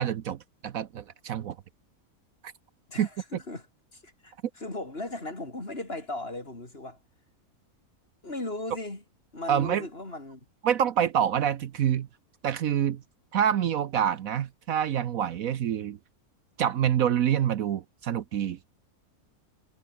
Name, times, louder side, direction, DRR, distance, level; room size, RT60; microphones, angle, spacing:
voice 1, 0.0-1.6 3.0-3.1 9.5-9.8 10.6-12.1 12.4-13.0 13.3-16.0 16.6-18.6, right 9 dB, 70° right, 1.2 m, -26 dB
voice 2, 2.9-3.7 3.9-7.0 8.2-9.0 9.3-10.4, left 2 dB, 40° left, 4.9 m, -37 dB
omnidirectional pair, 1.6 m